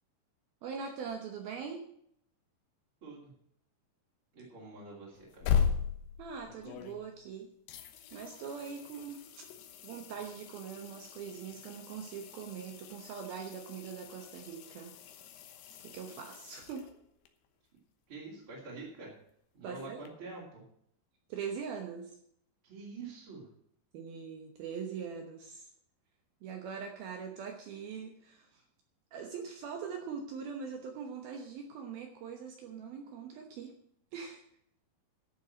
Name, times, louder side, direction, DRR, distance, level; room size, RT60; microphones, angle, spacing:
voice 1, 0.6-1.8 6.2-7.5 8.1-9.2 9.8-15.0 15.8-16.9 19.6-20.1 21.3-22.2 23.9-25.7 26.4-28.6 29.1-33.7 34.1-34.4, right 6 dB, 70° right, 3 dB, 2.5 m, -42 dB
voice 2, 3.0-3.3 4.3-5.6 18.1-19.1 19.5-20.6 22.6-23.5, right 3 dB, 30° right, -6 dB, 3.2 m, -46 dB
sound 1, 5.1-7.3 7.7-17.3 20.1-20.2, left 7 dB, 75° left, 3.3 m, -38 dB
12.0 x 7.0 x 7.4 m, 0.69 s
omnidirectional pair, 5.5 m